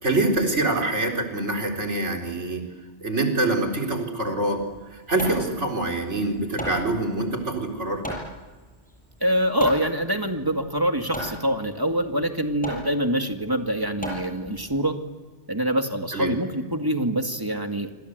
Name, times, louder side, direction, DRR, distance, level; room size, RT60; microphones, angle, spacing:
voice 1, 0.0-2.6 3.0-4.6 4.9-8.0 16.1-16.3, right 2 dB, 80° right, 2 dB, 4.5 m, -25 dB
Hammer, 4.6-14.8, equal, 5° left, 7.5 m, -37 dB
voice 2, 9.2-15.0 15.5-17.9, right 1 dB, 20° right, 4 dB, 2.2 m, -25 dB
27.0 x 26.0 x 8.2 m, 1.3 s
omnidirectional pair, 1.2 m